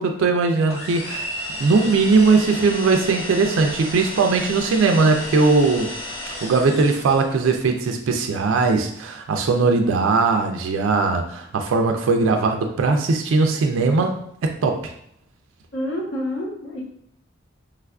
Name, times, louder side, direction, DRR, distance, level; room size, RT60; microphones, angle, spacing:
voice 1, 0.0-5.9 6.4-14.8, right 4 dB, 80° right, 4 dB, 0.3 m, -19 dB
sound 1, 0.7-7.4, left 1 dB, 85° left, 1.1 m, -33 dB
voice 2, 15.7-16.8, left 1 dB, 70° left, -2 dB, 0.8 m, -28 dB
3.4 x 2.4 x 2.2 m, 0.71 s
head